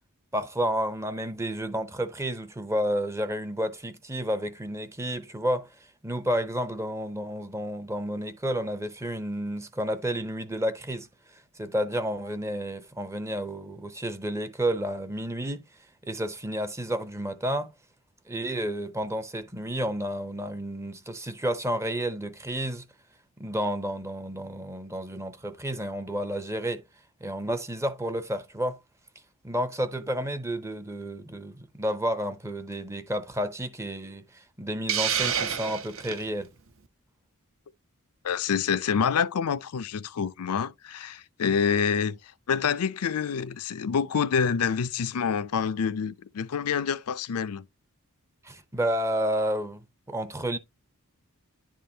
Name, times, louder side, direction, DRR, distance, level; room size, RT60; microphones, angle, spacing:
voice 1, 0.3-5.7 6.0-11.1 11.6-15.7 16.0-17.7 18.3-22.9 23.4-26.8 27.2-28.8 29.4-36.5 48.4-50.6, equal, 15° right, 0.6 m, -31 dB
Hiss, 34.9-36.2, right 8 dB, 60° right, 0.9 m, -28 dB
voice 2, 38.2-42.2 42.5-47.6, left 6 dB, 80° left, 0.5 m, -27 dB
11.0 x 3.7 x 2.7 m
head